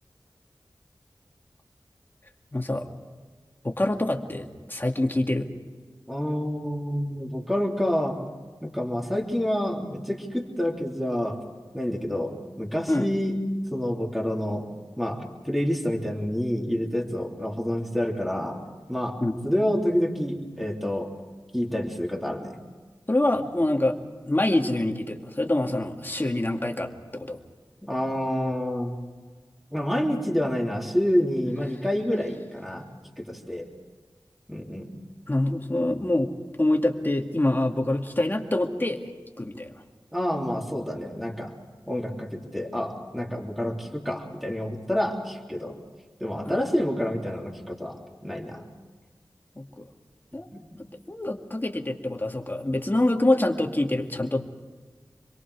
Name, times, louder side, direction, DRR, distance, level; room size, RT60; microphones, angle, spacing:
voice 1, 2.5-2.9 3.6-5.5 12.9-13.1 19.2-19.4 23.1-24.0 24.2-27.4 35.3-36.3 36.6-39.0 39.4-39.7 46.5-46.7 49.6-49.9 50.3-50.5 51.1-54.5, left 1 dB, 25° left, 3 dB, 2.1 m, -25 dB
voice 2, 6.1-8.2 8.6-11.4 11.7-13.4 13.7-14.6 15.0-18.6 18.9-19.2 19.4-21.1 21.5-22.6 27.8-28.9 29.7-32.8 33.2-33.7 34.5-34.9 40.1-41.5 41.9-45.8 46.2-48.6 50.5-50.7, equal, ahead, -1 dB, 3.3 m, -28 dB
28.0 x 22.5 x 4.9 m, 1.4 s
wide cardioid pair, 70°, 8 cm